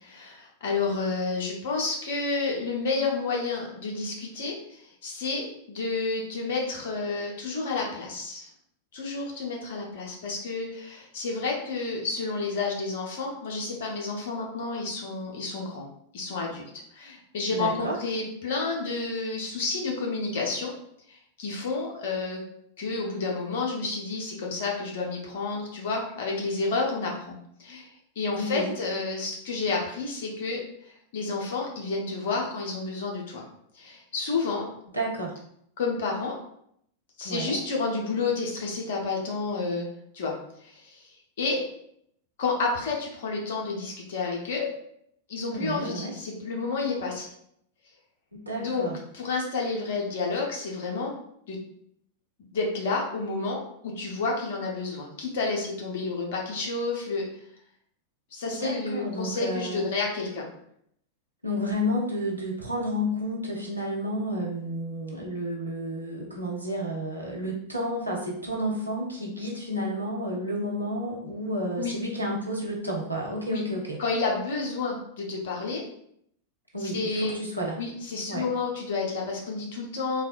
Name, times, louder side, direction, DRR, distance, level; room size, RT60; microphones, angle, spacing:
voice 1, 0.1-8.5 8.9-15.9 16.1-20.7 21.1-22.4 22.8-27.9 28.2-33.4 33.7-34.7 35.8-36.4 37.2-39.9 40.1-40.4 40.6-41.6 42.4-44.7 45.3-47.3 48.6-48.9 49.1-51.2 51.5-51.6 52.5-57.2 58.3-60.5 71.8-71.9 73.5-73.6 74.0-75.8 76.9-77.4 77.8-80.2, left 3 dB, 55° left, -1 dB, 0.7 m, -30 dB
voice 2, 17.5-18.0 28.4-28.8 34.9-35.4 37.2-37.6 45.5-46.1 48.3-49.0 58.4-59.9 61.4-74.0 76.7-77.8 78.3-78.5, equal, 90° right, -3 dB, 0.6 m, -31 dB
3.2 x 2.2 x 2.4 m, 0.70 s
figure-of-eight pair, 90°, 0 cm